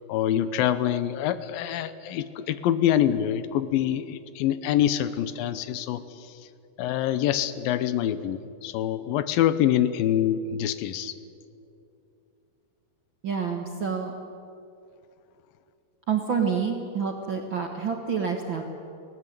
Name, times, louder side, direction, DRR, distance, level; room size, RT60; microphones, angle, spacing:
voice 1, 0.1-6.5 6.8-11.2, left 11 dB, 85° left, 13 dB, 2.6 m, -25 dB
voice 2, 13.2-14.1 16.1-18.6, right 6 dB, 55° right, 2 dB, 1.3 m, -28 dB
20.0 x 17.0 x 9.3 m, 2.6 s
omnidirectional pair, 4.1 m